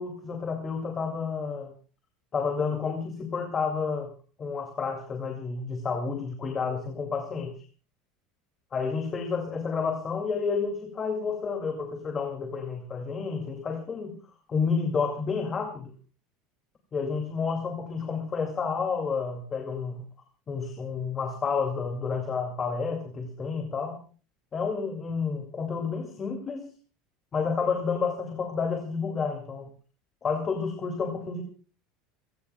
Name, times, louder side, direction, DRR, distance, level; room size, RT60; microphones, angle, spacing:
voice 1, 0.0-1.7 2.3-4.1 4.4-7.5 8.7-14.2 14.5-15.9 16.9-20.0 20.5-24.0 24.5-26.7 27.3-29.7 30.2-31.4, left 5 dB, 20° left, 4 dB, 2.4 m, -30 dB
29.0 x 17.5 x 2.3 m, 0.38 s
cardioid pair, 180°, 0 cm